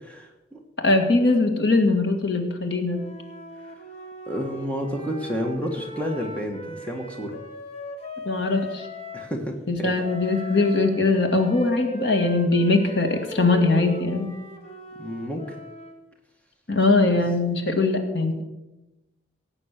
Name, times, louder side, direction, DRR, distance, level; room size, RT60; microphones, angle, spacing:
voice 1, 0.0-0.6 4.3-7.4 9.1-9.9 10.5-10.7 15.0-15.5, equal, 5° left, 2 dB, 1.6 m, -30 dB
voice 2, 0.8-3.0 8.2-8.9 9.7-14.3 16.7-18.4, left 3 dB, 75° left, 5 dB, 2.1 m, -21 dB
Wind instrument woodwind instrument, 2.9-9.3 10.0-16.0, equal, 35° left, 1.7 m, -39 dB
17.0 x 8.7 x 6.7 m, 1.0 s
head